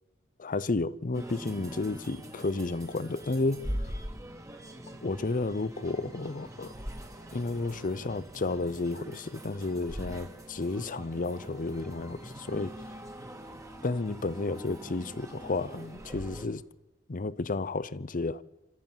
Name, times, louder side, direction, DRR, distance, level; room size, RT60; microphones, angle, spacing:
voice 1, 0.4-4.0 5.0-6.7 7.3-12.8 13.8-16.6 17.1-18.4, left 3 dB, 40° left, 0.7 m, -32 dB
sound 1, 1.1-16.5, equal, 15° right, 2.3 m, -43 dB
26.5 x 13.5 x 8.9 m
head